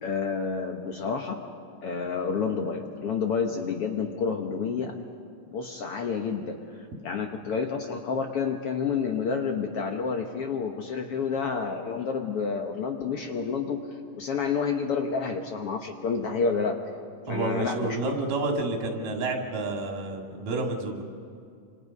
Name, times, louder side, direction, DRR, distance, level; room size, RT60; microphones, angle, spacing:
voice 1, 0.0-1.4 1.8-4.9 5.5-6.6 7.0-13.8 14.2-16.8 17.2-18.0, left 5 dB, 60° left, 4 dB, 1.6 m, -29 dB
voice 2, 17.3-21.0, right 2 dB, 90° right, 2 dB, 3.8 m, -29 dB
27.0 x 26.5 x 5.4 m, 2.4 s
omnidirectional pair, 3.7 m